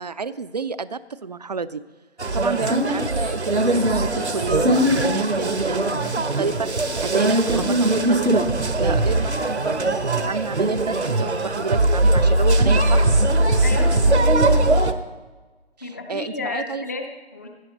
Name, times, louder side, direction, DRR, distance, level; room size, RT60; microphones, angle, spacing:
voice 1, 0.0-1.8 2.3-13.1 15.8-16.9, right 4 dB, 40° right, 15 dB, 0.4 m, -30 dB
sound 1, 2.2-14.9, right 2 dB, 85° right, 1.1 m, -20 dB
sound 2, 3.8-4.8 5.3-6.4 6.8-8.6, left 4 dB, 60° left, 2.7 m, -43 dB
voice 2, 13.6-14.3 15.8-17.5, left 3 dB, 15° left, 5 dB, 0.6 m, -32 dB
17.0 x 10.5 x 4.0 m, 1.3 s
figure-of-eight pair, 140°, 33 cm